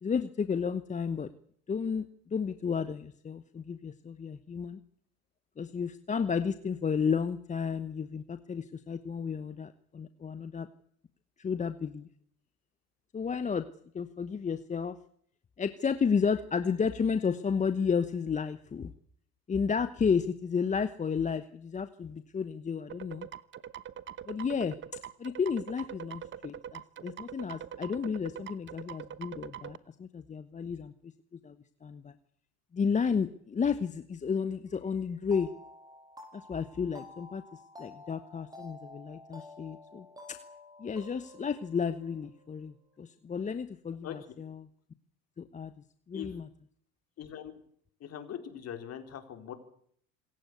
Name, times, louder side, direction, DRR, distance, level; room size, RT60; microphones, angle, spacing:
voice 1, 0.0-1.3 1.7-4.8 5.6-10.7 11.4-12.1 13.1-13.7 13.9-15.0 15.6-18.9 19.5-23.3 24.3-31.1 31.4-31.6 31.8-32.1 32.7-35.5 36.3-40.4 40.8-44.7 45.4-45.7 46.1-46.5, left 6 dB, 20° left, 11 dB, 1.0 m, -32 dB
sound 1, 22.9-29.8, right 9 dB, 30° right, 1.1 m, -43 dB
sound 2, 35.3-42.8, left 2 dB, 10° right, 7.9 m, -51 dB
voice 2, 47.2-47.5 48.0-49.5, left 9 dB, 40° left, 7 dB, 4.5 m, -41 dB
26.5 x 15.5 x 8.2 m, 0.66 s
supercardioid pair, 115°, 37 cm